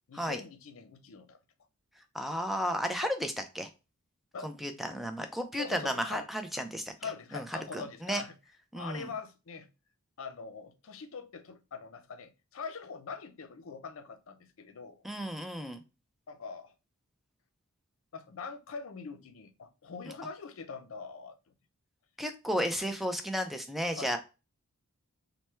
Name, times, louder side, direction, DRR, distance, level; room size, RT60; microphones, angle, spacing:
voice 1, 0.1-1.4 3.0-3.1 4.3-4.5 5.5-6.6 7.0-8.3 8.7-9.7 10.2-15.0 16.3-16.7 18.1-21.4 23.9-24.2, left 5 dB, 65° left, 0.5 m, -43 dB
voice 2, 2.1-3.7 4.4-6.9 7.3-7.4 7.7-8.2 8.7-9.1 15.0-15.8 22.2-24.2, equal, ahead, 0.3 m, -33 dB
3.2 x 2.1 x 4.3 m
head